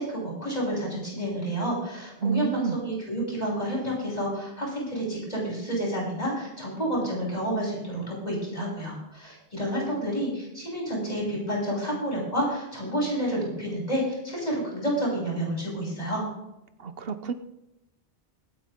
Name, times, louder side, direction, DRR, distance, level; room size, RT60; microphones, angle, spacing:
voice 1, 0.0-16.2, right 1 dB, 40° left, -4 dB, 6.7 m, -29 dB
voice 2, 2.2-2.8 16.8-17.3, right 6 dB, 70° right, 10 dB, 1.1 m, -28 dB
23.5 x 9.2 x 3.7 m, 0.89 s
omnidirectional pair, 1.0 m